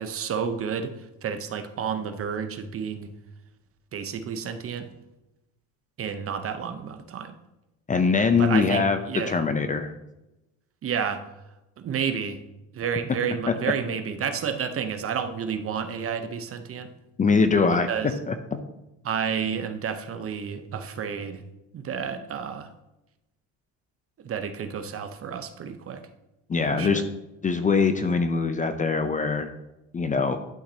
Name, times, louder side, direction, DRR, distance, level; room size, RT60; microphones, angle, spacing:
voice 1, 0.0-3.1 3.9-4.9 6.0-7.3 8.4-9.4 10.8-11.2 11.8-12.4 12.7-16.9 17.9-18.1 19.0-21.5 21.7-22.7 24.2-26.1 26.7-27.0, right 7 dB, 40° right, 9 dB, 0.8 m, -30 dB
voice 2, 7.9-9.9 17.2-17.9 18.3-18.6 26.5-27.0 27.4-29.5 29.9-30.4, left 4 dB, 20° left, 8 dB, 0.6 m, -23 dB
11.5 x 5.8 x 2.8 m, 0.95 s
supercardioid pair, 100°, 36 cm